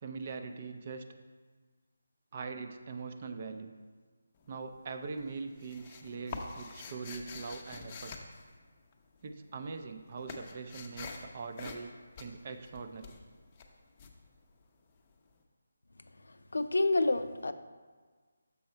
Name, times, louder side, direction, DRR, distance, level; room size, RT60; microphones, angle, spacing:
voice 1, 0.0-1.1 2.3-3.7 4.5-8.2 9.2-11.9 12.2-13.2, right 4 dB, 35° right, 7 dB, 0.5 m, -42 dB
sound 1, 4.3-4.9 5.2-9.2 9.5-15.1, left 4 dB, 25° left, 0.6 m, -46 dB
voice 2, 16.5-17.5, left 2 dB, 80° left, 10 dB, 0.4 m, -28 dB
6.9 x 5.3 x 4.4 m, 1.5 s
figure-of-eight pair, 165°, 0 cm